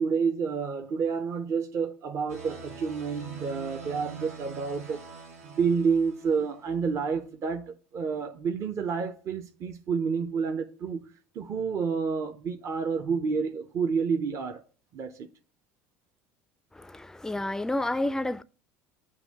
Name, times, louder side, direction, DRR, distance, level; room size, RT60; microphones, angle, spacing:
voice 1, 0.0-5.1 5.4-11.1 11.3-14.6 14.9-15.3, right 5 dB, 45° right, 0.7 m, -29 dB
sound 1, 2.3-6.7, right 4 dB, 75° right, 0.9 m, -44 dB
voice 2, 16.7-18.4, left 1 dB, 5° left, 0.4 m, -30 dB
8.0 x 2.7 x 5.3 m
hypercardioid pair, 70°, 7 cm